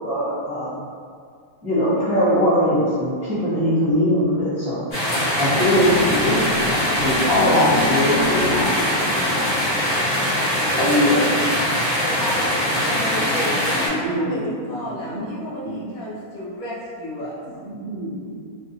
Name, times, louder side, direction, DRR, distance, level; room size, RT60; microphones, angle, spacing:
voice 1, 0.0-0.9 1.6-4.8 5.4-8.7 9.1-9.5 10.8-11.4, equal, 10° right, -11 dB, 0.5 m, -21 dB
sound 1, 4.9-13.9, equal, 50° left, 1.6 m, -22 dB
sound 2, 5.7-9.8, left 4 dB, 90° left, 1.1 m, -32 dB
voice 2, 8.5-9.5 12.9-13.5 13.7-16.1 17.4-18.4, right 2 dB, 80° right, -7 dB, 0.5 m, -33 dB
voice 3, 10.6-11.5 12.0-17.4, left 1 dB, 70° left, -6 dB, 1.1 m, -32 dB
2.9 x 2.5 x 2.7 m, 2.2 s
omnidirectional pair, 1.6 m